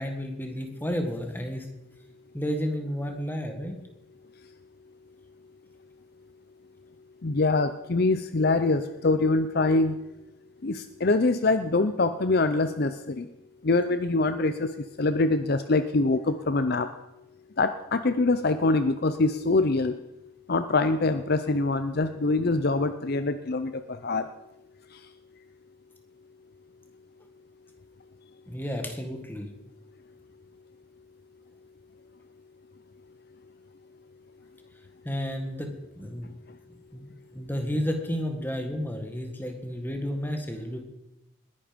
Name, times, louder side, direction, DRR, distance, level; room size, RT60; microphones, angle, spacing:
voice 1, 0.0-1.7 2.3-3.7 28.5-29.5 35.0-35.7 36.0-36.3 36.9-40.8, equal, 10° left, 4 dB, 1.7 m, -31 dB
voice 2, 7.2-10.0 10.6-13.3 13.6-14.7 15.0-16.9 17.6-20.0 20.5-24.3, left 3 dB, 45° left, 11 dB, 0.6 m, -24 dB
20.0 x 11.0 x 5.2 m, 0.93 s
head